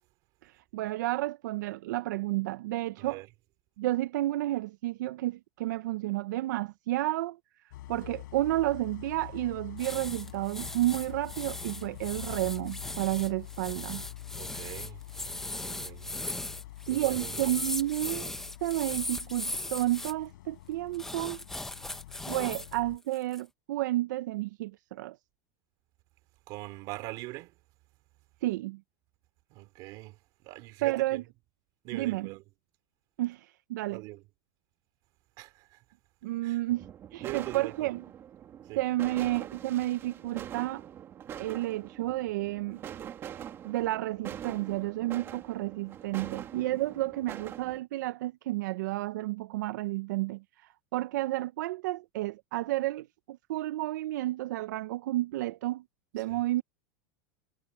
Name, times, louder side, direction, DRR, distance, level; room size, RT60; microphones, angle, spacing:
voice 1, 0.4-3.2 3.8-7.4 7.9-14.0 16.9-18.3 18.6-21.4 22.3-25.2 28.4-28.8 30.8-31.2 31.9-32.3 33.2-34.0 36.2-38.0 38.8-40.8 41.4-42.8 43.6-55.8 56.1-56.6, right 16 dB, 75° right, 0.6 m, -31 dB
voice 2, 3.0-3.3 14.4-15.0 15.6-16.2 16.8-17.6 26.5-27.6 29.5-31.2 31.8-32.4 33.9-34.2 35.4-35.8 36.4-36.6 37.2-37.9 38.6-38.8 56.2-56.5, right 20 dB, 40° right, 3.0 m, -43 dB
Idling, 7.7-23.0, left 15 dB, 80° left, 6.6 m, -46 dB
sound 1, 9.8-20.1 20.9-22.8 23.1-23.4, left 2 dB, 5° left, 0.9 m, -38 dB
sound 2, 36.7-47.8, right 10 dB, 25° right, 2.1 m, -44 dB
supercardioid pair, 170°, 10 cm